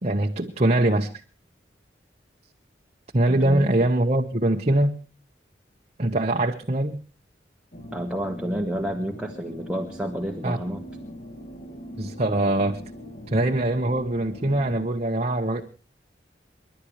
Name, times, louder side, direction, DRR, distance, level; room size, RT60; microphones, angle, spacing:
voice 1, 0.0-1.1 3.1-5.0 6.0-7.0 10.4-10.6 12.0-12.8 13.3-15.6, right 1 dB, 40° right, 1.2 m, -23 dB
voice 2, 3.3-3.7 7.9-10.8, equal, 5° right, 1.6 m, -30 dB
sound 1, 7.7-14.9, equal, 45° left, 1.9 m, -41 dB
30.0 x 11.5 x 3.2 m
head